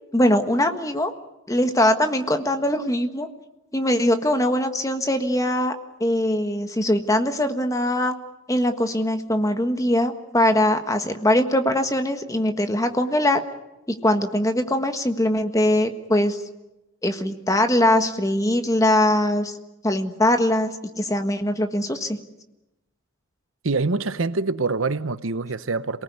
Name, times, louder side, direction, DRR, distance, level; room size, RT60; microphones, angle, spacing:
voice 1, 0.1-1.1 1.5-3.3 3.7-5.7 6.0-8.1 8.5-13.4 13.9-16.4 17.0-19.6 19.8-22.2, left 1 dB, 15° left, 1.5 m, -21 dB
voice 2, 23.6-26.0, right 3 dB, 75° right, 0.9 m, -25 dB
27.5 x 19.0 x 9.6 m
head